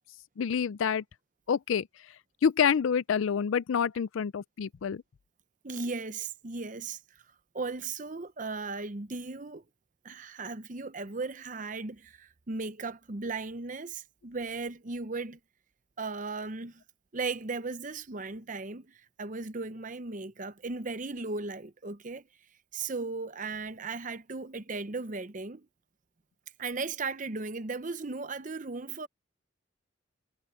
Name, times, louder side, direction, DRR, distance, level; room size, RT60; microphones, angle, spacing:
voice 1, 0.4-1.0 1.5-1.9 2.4-5.0, left 7 dB, 80° left, 0.4 m, -27 dB
voice 2, 5.6-7.0 7.5-9.6 10.0-15.4 16.0-16.8 17.1-22.2 22.7-25.7 26.6-29.1, right 3 dB, 40° right, 0.8 m, -36 dB
head